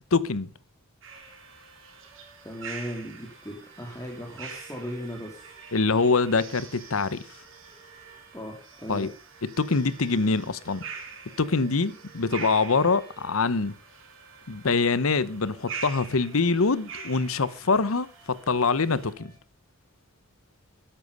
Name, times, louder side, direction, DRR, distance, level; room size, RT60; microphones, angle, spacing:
voice 1, 0.1-0.5 5.7-7.2 8.9-9.1 9.6-10.8 11.4-13.7 14.5-19.3, left 4 dB, 80° left, 0.9 m, -24 dB
sound 1, 1.0-19.4, right 5 dB, 25° right, 6.8 m, -54 dB
sound 2, 1.0-19.1, right 5 dB, 65° right, 3.7 m, -45 dB
voice 2, 2.4-5.5 8.3-9.1, equal, 15° left, 2.8 m, -37 dB
13.5 x 10.0 x 5.4 m
head